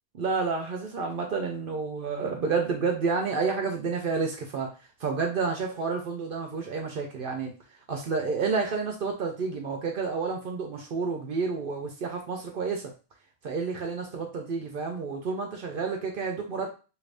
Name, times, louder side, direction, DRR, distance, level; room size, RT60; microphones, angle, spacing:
voice 1, 0.1-4.7 5.0-7.5 7.9-12.9 13.4-16.7, right 4 dB, 65° right, 2 dB, 0.7 m, -30 dB
2.8 x 2.5 x 3.3 m, 0.33 s
omnidirectional pair, 1.1 m